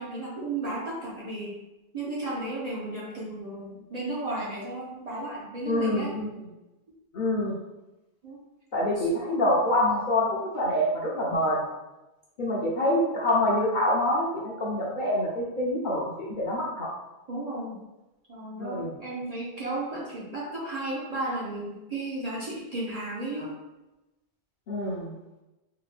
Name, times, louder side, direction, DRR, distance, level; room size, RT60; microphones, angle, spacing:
voice 1, 0.0-1.6 1.9-6.1 8.2-8.4 17.3-17.8 18.3-23.5, right 2 dB, 45° right, -6 dB, 0.5 m, -34 dB
voice 2, 5.6-6.5 7.1-7.6 8.7-11.7 12.4-16.9 18.6-19.0 24.7-25.1, left 1 dB, 55° left, -4 dB, 0.6 m, -26 dB
3.3 x 2.1 x 3.2 m, 1.0 s
omnidirectional pair, 1.2 m